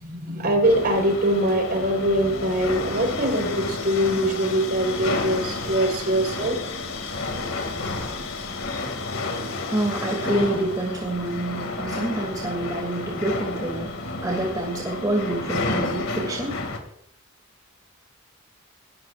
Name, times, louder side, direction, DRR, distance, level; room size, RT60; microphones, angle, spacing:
voice 1, 0.0-6.6, right 1 dB, 50° right, 2 dB, 4.5 m, -23 dB
sound 1, 0.6-16.8, left 3 dB, 80° left, 2.5 m, -31 dB
voice 2, 9.7-16.5, right 1 dB, 20° right, -1 dB, 2.7 m, -27 dB
20.5 x 14.5 x 2.6 m, 0.67 s
head